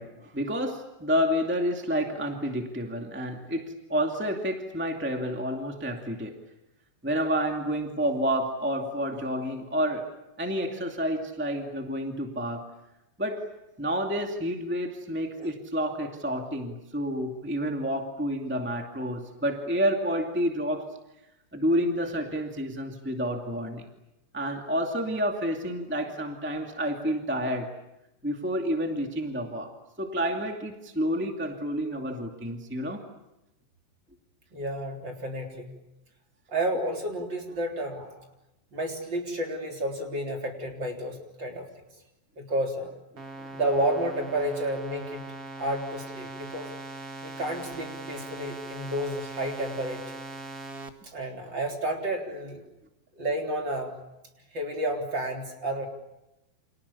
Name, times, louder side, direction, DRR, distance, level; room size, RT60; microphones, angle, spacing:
voice 1, 0.0-6.4 7.0-10.0 10.4-12.7 13.2-13.5 13.8-20.9 21.5-23.8 24.3-27.7 28.2-33.0 43.4-43.5, equal, 5° right, 3 dB, 1.2 m, -29 dB
voice 2, 34.5-35.7 36.5-38.2 38.7-41.6 42.4-42.9 43.5-45.2 45.6-46.7 47.2-50.2 51.0-52.6 53.2-54.0 54.5-55.9, right 1 dB, 30° right, 2 dB, 3.9 m, -31 dB
sound 1, 43.2-50.9, right 2 dB, 50° right, 1.0 m, -40 dB
30.0 x 27.5 x 7.1 m, 0.90 s
omnidirectional pair, 4.7 m